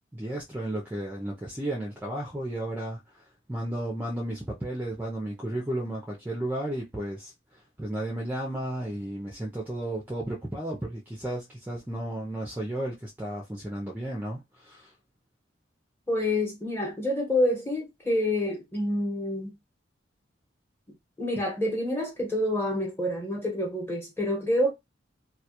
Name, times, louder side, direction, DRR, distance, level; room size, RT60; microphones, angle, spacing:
voice 1, 0.1-14.9, right 1 dB, 10° right, 0.4 m, -33 dB
voice 2, 16.1-19.6 21.2-24.7, left 1 dB, 10° left, 0.9 m, -27 dB
2.2 x 2.2 x 2.8 m
head